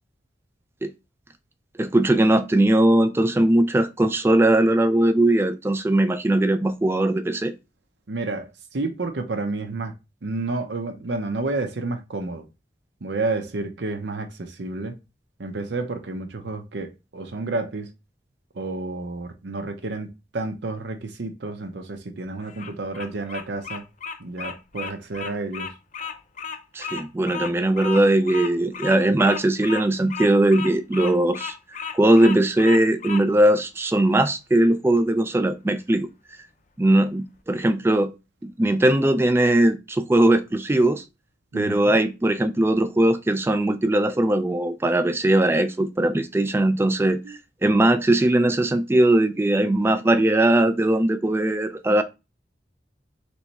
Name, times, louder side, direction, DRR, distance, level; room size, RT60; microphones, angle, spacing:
voice 1, 1.8-7.5 26.7-31.5 31.9-36.1 36.8-38.1 38.4-41.0 41.5-52.0, right 1 dB, 15° right, 0.3 m, -20 dB
voice 2, 8.1-9.9 10.2-12.5 13.0-15.0 15.4-17.9 18.5-23.8 24.2-25.7 41.5-42.0 47.2-47.4, right 3 dB, 75° right, 0.7 m, -30 dB
Bird vocalization bird call bird song, 22.4-33.2, left 6 dB, 45° left, 0.5 m, -34 dB
3.4 x 3.1 x 4.1 m
head